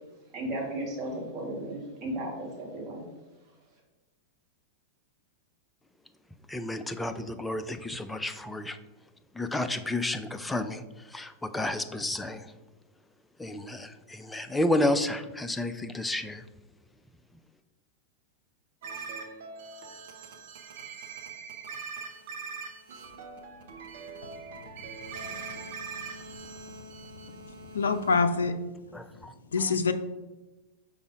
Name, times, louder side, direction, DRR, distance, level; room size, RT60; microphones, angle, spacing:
voice 1, 0.3-3.1, right 1 dB, 35° right, -1 dB, 1.9 m, -35 dB
voice 2, 6.5-8.8 9.4-10.8 11.1-12.5 13.4-16.4 28.9-29.3, left 1 dB, 5° left, 9 dB, 0.4 m, -31 dB
sound 1, 18.8-28.2, right 4 dB, 60° right, 0.8 m, -42 dB
voice 3, 27.7-28.5 29.5-29.9, left 4 dB, 75° left, 9 dB, 0.4 m, -24 dB
5.4 x 3.8 x 4.6 m, 1.1 s
figure-of-eight pair, 95°, 0 cm